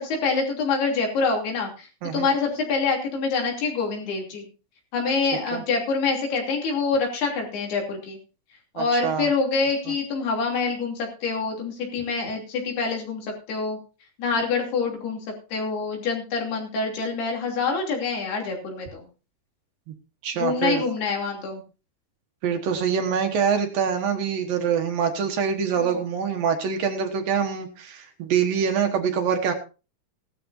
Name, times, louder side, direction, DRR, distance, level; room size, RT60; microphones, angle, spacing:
voice 1, 0.0-1.9 2.1-4.5 4.9-8.2 8.7-13.8 14.2-15.2 15.5-19.0 20.4-21.6 25.8-25.9, left 4 dB, 70° left, 1 dB, 5.0 m, -26 dB
voice 2, 8.8-9.3 20.2-20.8 22.4-29.5, right 7 dB, 65° right, 5 dB, 2.7 m, -25 dB
17.0 x 12.5 x 2.7 m, 0.33 s
omnidirectional pair, 4.8 m